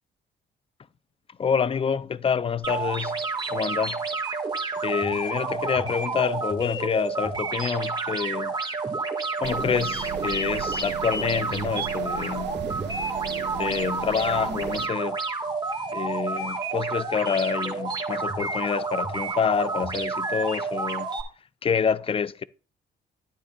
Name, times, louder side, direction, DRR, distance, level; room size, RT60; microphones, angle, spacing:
voice 1, 1.4-3.2 3.5-4.0 4.8-8.5 9.4-12.6 13.5-15.2 15.9-21.1 21.6-22.4, left 6 dB, 30° left, 0.5 m, -27 dB
sound 1, 2.6-21.2, right 3 dB, 20° right, 1.8 m, -30 dB
sound 2, 9.4-14.9, right 13 dB, 60° right, 0.4 m, -37 dB
11.5 x 9.6 x 2.4 m
cardioid pair, 90°, 20 cm